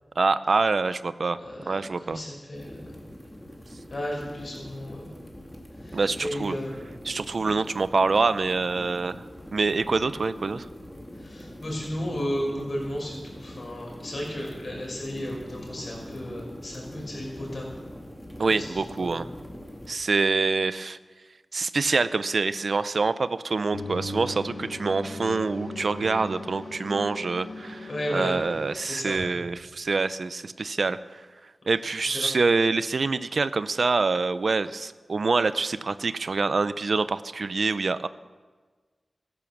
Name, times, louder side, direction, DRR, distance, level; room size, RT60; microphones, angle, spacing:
voice 1, 0.2-1.4 1.6-2.2 5.9-6.6 7.1-9.3 9.5-10.7 18.4-19.3 19.9-21.0 21.5-31.2 31.7-38.1, right 4 dB, 65° right, 15 dB, 0.5 m, -26 dB
voice 2, 1.4-2.8 3.9-5.2 5.7-6.8 11.1-17.7 18.5-19.3 27.9-28.4 28.8-29.3 32.1-32.3, equal, 55° left, -2 dB, 5.4 m, -34 dB
sound 1, 2.5-19.9, equal, 5° left, 2.2 m, -43 dB
sound 2, 23.7-28.7, left 1 dB, 70° left, 1.9 m, -38 dB
14.0 x 11.0 x 7.2 m, 1.4 s
wide cardioid pair, 95°, 0 cm